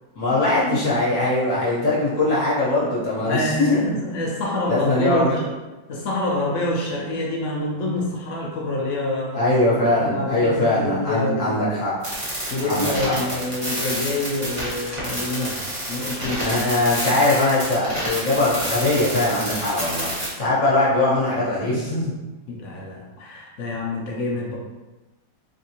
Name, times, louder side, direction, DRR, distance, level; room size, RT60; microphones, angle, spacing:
voice 1, 0.2-3.9 4.7-5.4 9.3-11.9 12.6-13.4 16.4-20.1 20.4-22.1, left 2 dB, 50° left, -7 dB, 1.1 m, -21 dB
voice 2, 3.2-5.5 5.9-9.5 9.9-11.6 12.5-16.5 22.5-24.6, left 1 dB, 65° left, -2 dB, 0.7 m, -27 dB
sound 1, 12.0-20.3, equal, 20° right, 1.1 m, -29 dB
3.4 x 2.7 x 2.8 m, 1.1 s
omnidirectional pair, 2.0 m